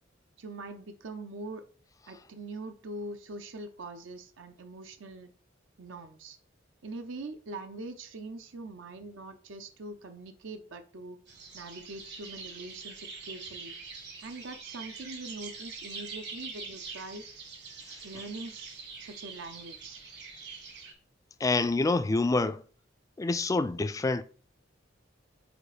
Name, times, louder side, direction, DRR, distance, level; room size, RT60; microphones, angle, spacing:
voice 1, 0.4-1.7 2.1-5.3 5.8-6.4 6.8-11.2 11.5-13.7 14.2-17.3 18.0-20.0, right 2 dB, 80° right, 0.7 m, -43 dB
sound 1, 11.3-20.9, right 5 dB, 60° right, 1.6 m, -44 dB
voice 2, 21.4-22.6 23.2-24.2, left 3 dB, 15° left, 0.3 m, -27 dB
5.0 x 4.2 x 5.0 m
head